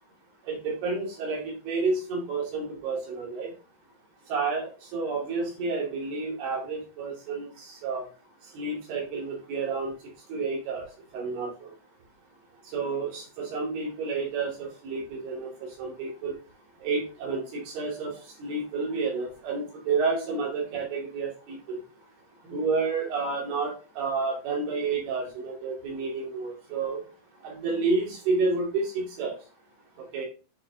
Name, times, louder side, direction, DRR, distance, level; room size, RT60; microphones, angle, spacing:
voice 1, 0.5-3.5 4.3-8.1 8.5-9.9 10.3-10.8 11.1-11.7 12.7-15.5 15.8-16.3 16.8-18.1 18.4-21.8 22.5-27.0 27.4-29.4 30.1-30.3, right 4 dB, 85° right, -2 dB, 4.6 m, -30 dB
9.0 x 4.8 x 2.9 m, 0.35 s
omnidirectional pair, 4.4 m